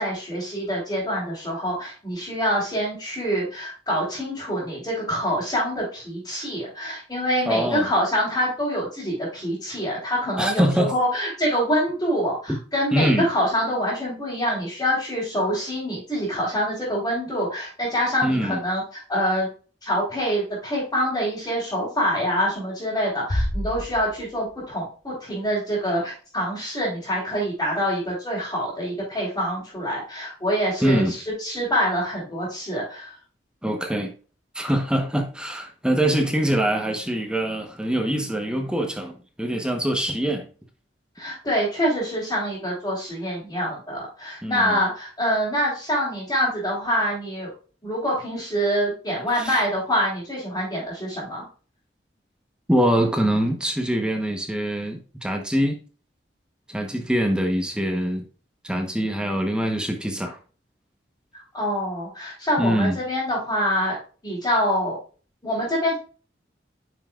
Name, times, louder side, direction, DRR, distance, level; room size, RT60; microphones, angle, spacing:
voice 1, 0.0-18.8 19.1-19.5 19.8-31.1 31.4-33.1 41.2-47.5 47.8-51.4 61.5-64.0 64.2-65.0 65.4-66.0, equal, 20° left, 3.6 m, -25 dB
voice 2, 7.5-7.9 10.4-10.9 12.5-12.6 12.9-13.3 18.2-18.6 30.8-31.1 33.6-34.1 34.5-40.5 44.4-44.8 49.3-49.6 52.7-55.8 56.7-58.3 58.6-60.4 62.6-63.0, equal, 5° right, 1.0 m, -24 dB
Bass drum, 23.3-24.7, left 1 dB, 80° left, 2.4 m, -28 dB
9.5 x 5.7 x 2.4 m
head